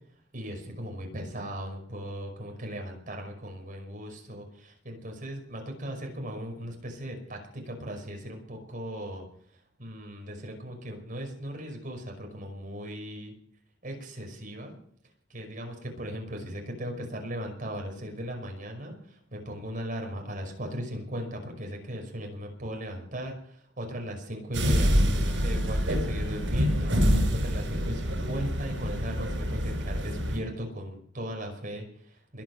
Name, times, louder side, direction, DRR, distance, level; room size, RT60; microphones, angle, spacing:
voice 1, 0.3-9.2 9.8-13.3 13.8-14.7 15.3-32.4, equal, 45° right, 3 dB, 5.5 m, -38 dB
sound 1, 24.5-30.4, equal, 80° right, 6.0 m, -26 dB
21.5 x 9.2 x 6.7 m, 0.62 s
head